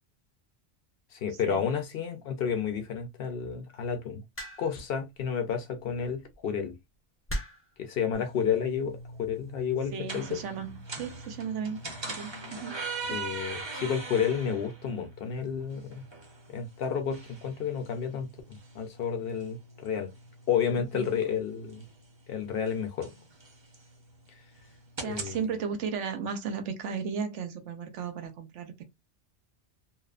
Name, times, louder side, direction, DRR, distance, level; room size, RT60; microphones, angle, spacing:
voice 1, 1.1-4.2 4.6-6.7 7.8-10.4 13.1-16.1 16.5-20.1 20.5-21.8 22.3-23.1 25.0-25.4, left 7 dB, 65° left, 0.7 m, -31 dB
sound 1, 4.4-4.9 6.1-6.3 7.3-7.8 8.7-9.0, equal, 15° left, 0.6 m, -36 dB
sound 2, 8.1-25.4, right 3 dB, 30° right, 0.6 m, -42 dB
voice 2, 9.9-11.8 12.1-13.2 20.9-21.1 25.0-28.8, right 6 dB, 85° right, 1.0 m, -35 dB
2.9 x 2.0 x 2.4 m
omnidirectional pair, 1.2 m